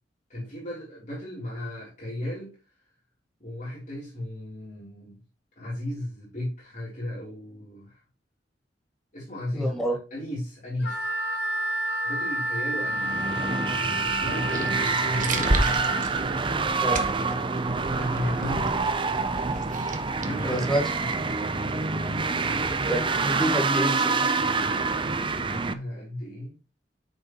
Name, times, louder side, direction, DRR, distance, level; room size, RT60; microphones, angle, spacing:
voice 1, 0.3-2.5 3.4-5.2 5.6-8.0 9.1-9.7 10.1-11.1 12.0-13.3 14.0-15.6 16.9-17.3 18.0-18.7 20.2-21.2 25.1-26.6, left 1 dB, 45° left, 3.5 m, -35 dB
voice 2, 9.5-10.0 16.8-17.0 20.4-20.8 22.9-24.3, right 1 dB, ahead, 2.2 m, -27 dB
Wind instrument woodwind instrument, 10.8-16.0, right 1 dB, 75° left, 2.3 m, -30 dB
sound 1, 12.8-25.7, right 4 dB, 30° right, 0.6 m, -27 dB
sound 2, 14.0-21.3, right 2 dB, 50° right, 1.3 m, -33 dB
8.7 x 6.8 x 3.1 m
head